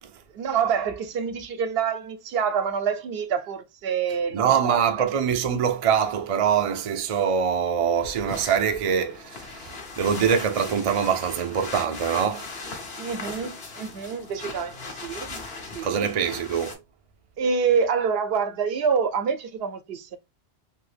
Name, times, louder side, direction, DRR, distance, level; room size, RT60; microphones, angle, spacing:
voice 1, 0.3-5.1 13.0-15.4 15.7-16.1 17.4-20.2, right 6 dB, 70° right, 0.8 m, -27 dB
voice 2, 4.3-12.7 15.8-16.8, right 7 dB, 50° right, 0.4 m, -24 dB
sound 1, 7.9-16.7, left 3 dB, 70° left, 1.1 m, -39 dB
2.7 x 2.6 x 3.2 m
omnidirectional pair, 1.1 m